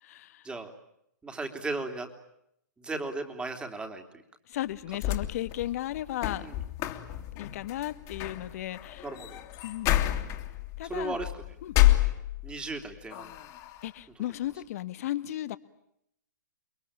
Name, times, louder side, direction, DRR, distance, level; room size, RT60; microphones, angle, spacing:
voice 1, 0.0-0.4 4.5-6.5 7.3-9.0 9.6-10.0 10.8-11.2 11.6-11.7 13.8-15.6, left 13 dB, 50° left, 13 dB, 1.6 m, -35 dB
voice 2, 1.2-2.1 2.8-4.0 6.4-6.5 9.0-9.4 10.8-11.3 12.4-13.3, right 3 dB, 10° right, 6 dB, 3.4 m, -35 dB
sound 1, 4.7-12.7 13.1-13.9, left 15 dB, 30° left, 2.7 m, -29 dB
29.5 x 22.5 x 8.9 m, 0.77 s
hypercardioid pair, 135°, 10 cm